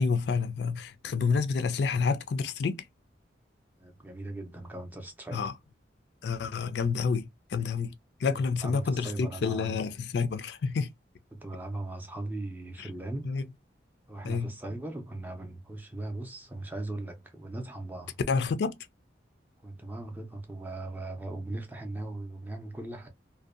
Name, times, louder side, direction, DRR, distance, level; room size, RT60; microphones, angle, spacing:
voice 1, 0.0-2.8 5.3-5.5 6.2-7.9 8.2-10.9 13.2-13.4 14.2-14.5 18.3-18.8, left 5 dB, 70° left, 0.3 m, -29 dB
voice 2, 3.8-5.4 8.6-9.8 11.3-13.4 14.1-18.2 19.6-23.1, right 2 dB, 10° right, 0.4 m, -38 dB
2.6 x 2.1 x 2.4 m
head